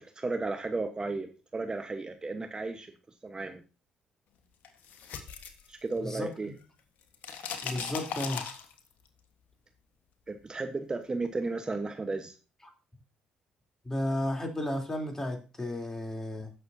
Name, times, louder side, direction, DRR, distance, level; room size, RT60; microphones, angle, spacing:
voice 1, 0.0-2.9 3.2-3.6 5.7-6.5 10.3-12.3, right 3 dB, 25° right, 6 dB, 1.1 m, -34 dB
sound 1, 4.6-6.3 6.6-9.1, left 7 dB, 65° left, 1.3 m, -38 dB
voice 2, 6.0-6.3 7.6-8.4 13.8-16.5, left 1 dB, 20° left, 2 dB, 3.3 m, -33 dB
15.5 x 6.7 x 2.7 m, 0.33 s
hypercardioid pair, 50°, 3 cm